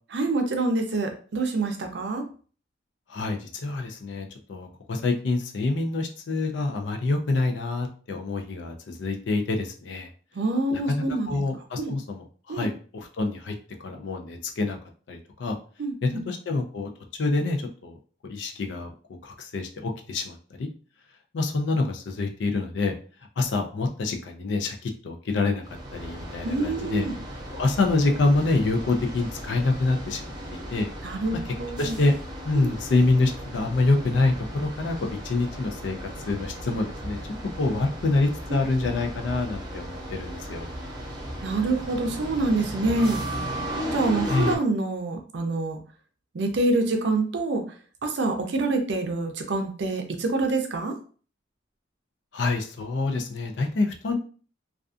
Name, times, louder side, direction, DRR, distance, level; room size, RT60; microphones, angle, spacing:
voice 1, 0.1-2.2 10.4-11.4 11.8-11.9 12.5-12.7 15.8-16.2 26.4-27.2 31.0-32.0 32.6-32.7 41.4-43.2 43.9-45.8 46.3-47.6 48.0-50.9, right 2 dB, 70° right, 5 dB, 0.5 m, -26 dB
voice 2, 3.1-10.1 10.9-13.5 13.8-14.8 15.1-15.6 16.0-16.9 17.2-17.9 18.3-18.9 19.2-20.7 21.3-22.9 23.4-25.6 25.9-27.1 27.5-30.9 31.5-32.1 32.4-37.2 37.6-40.7 44.3-44.6 52.3-54.2, left 3 dB, 75° left, 4 dB, 0.4 m, -26 dB
sound 1, 25.6-44.6, equal, 25° right, 0.7 m, -36 dB
2.4 x 2.3 x 2.4 m, 0.41 s
head